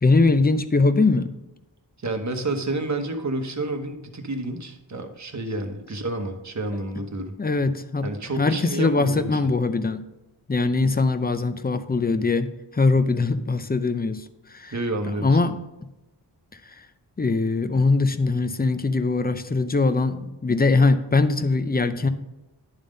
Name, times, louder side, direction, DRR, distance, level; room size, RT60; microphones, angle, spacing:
voice 1, 0.0-1.3 7.4-8.1 8.4-10.0 10.5-14.2 14.5-14.7 15.2-15.6 17.2-22.1, left 3 dB, 20° left, 11 dB, 0.5 m, -21 dB
voice 2, 2.0-7.3 8.0-9.5 14.7-15.4, right 2 dB, 40° right, 5 dB, 1.0 m, -29 dB
11.0 x 3.7 x 5.1 m, 0.98 s
wide cardioid pair, 60°, 42 cm